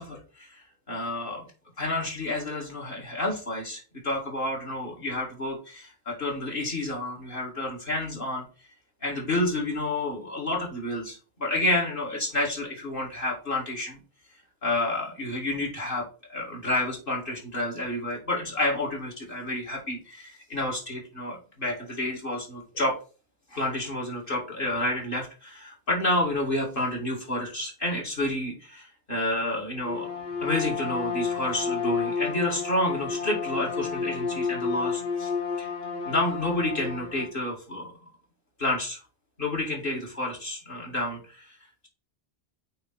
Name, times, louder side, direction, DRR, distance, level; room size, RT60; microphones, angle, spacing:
voice 1, 0.0-1.4 1.8-8.4 9.0-14.0 14.6-23.0 23.5-30.1 30.4-35.3 35.6-35.7 36.0-37.9 38.6-39.0 39.4-41.5, left 1 dB, 55° left, -3 dB, 2.4 m, -30 dB
Bowed string instrument, 29.8-37.3, left 5 dB, 75° left, 2.4 m, -31 dB
8.5 x 3.0 x 4.1 m, 0.35 s
omnidirectional pair, 1.1 m